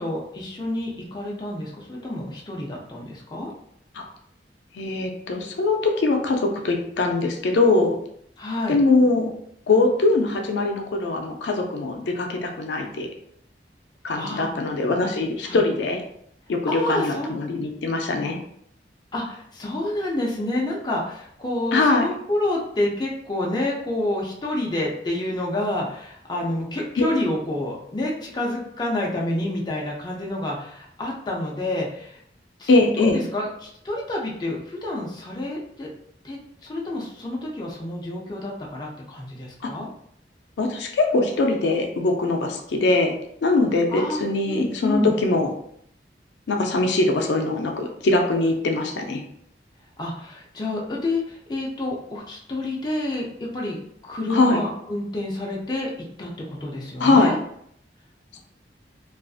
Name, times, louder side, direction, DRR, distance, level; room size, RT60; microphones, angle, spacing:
voice 1, 0.0-3.5 8.4-8.8 14.1-14.5 15.4-15.6 16.7-17.3 19.1-32.2 32.6-32.7 33.0-35.9 36.2-39.9 43.9-44.2 44.5-45.1 50.0-53.8 54.0-55.9 56.2-57.4, left 1 dB, 25° left, -2 dB, 0.4 m, -28 dB
voice 2, 4.7-8.0 8.7-9.3 9.7-13.1 14.0-16.0 16.5-18.4 21.7-22.1 27.0-27.1 32.7-33.2 39.6-39.7 40.6-43.1 43.4-45.5 46.5-49.2 54.3-54.6 57.0-57.3, left 2 dB, 85° left, 3 dB, 0.4 m, -22 dB
2.4 x 2.3 x 2.3 m, 0.69 s
head